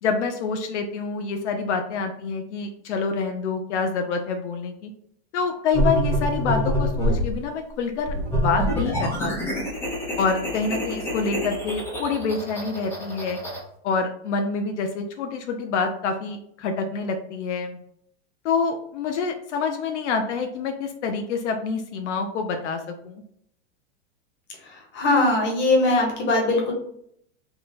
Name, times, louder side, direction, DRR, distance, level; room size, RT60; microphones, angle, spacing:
voice 1, 0.0-4.9 5.3-9.6 10.2-13.4 13.8-17.8 18.4-23.2, left 5 dB, 85° left, 5 dB, 0.6 m, -27 dB
sound 1, 5.7-7.3 8.0-13.6, equal, 5° left, 0.8 m, -26 dB
voice 2, 24.9-26.7, left 2 dB, 30° left, 0 dB, 1.2 m, -20 dB
3.6 x 2.3 x 4.0 m, 0.69 s
supercardioid pair, 145°, 34 cm